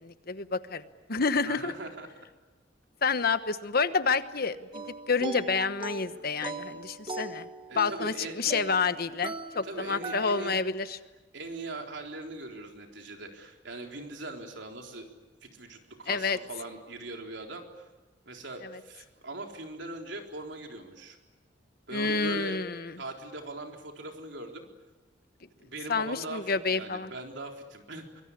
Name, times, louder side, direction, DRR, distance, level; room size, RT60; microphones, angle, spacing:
voice 1, 0.0-0.8 1.1-1.7 3.0-7.5 7.8-11.0 16.1-16.4 21.9-22.8 25.9-27.1, left 4 dB, 55° left, 12 dB, 1.1 m, -29 dB
voice 2, 1.5-2.1 7.7-8.3 9.6-10.6 11.3-15.1 15.4-17.8 18.3-21.2 21.9-22.6 23.0-24.7 25.6-28.2, right 2 dB, 70° right, 2 dB, 4.0 m, -40 dB
sound 1, 4.7-10.6, right 2 dB, 30° right, 1.3 m, -40 dB
24.5 x 23.0 x 9.8 m, 1.2 s
head